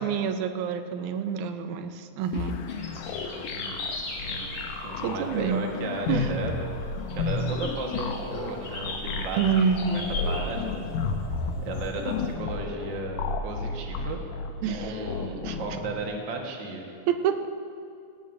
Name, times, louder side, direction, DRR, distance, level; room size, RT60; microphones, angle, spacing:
voice 1, 0.0-2.6 5.0-5.6 6.1-6.3 9.4-10.2 14.6-15.0 15.4-15.6 17.1-17.5, right 7 dB, 80° right, 8 dB, 2.1 m, -27 dB
sound 1, 2.2-12.4, left 2 dB, 50° left, 2.4 m, -39 dB
sound 2, 2.3-15.9, left 4 dB, 85° left, 2.3 m, -33 dB
voice 2, 2.9-6.8 7.1-9.4 9.9-10.8 11.6-14.2 14.6-16.8, right 3 dB, 45° right, 1 dB, 1.7 m, -35 dB
19.5 x 17.5 x 2.6 m, 2.5 s
omnidirectional pair, 3.4 m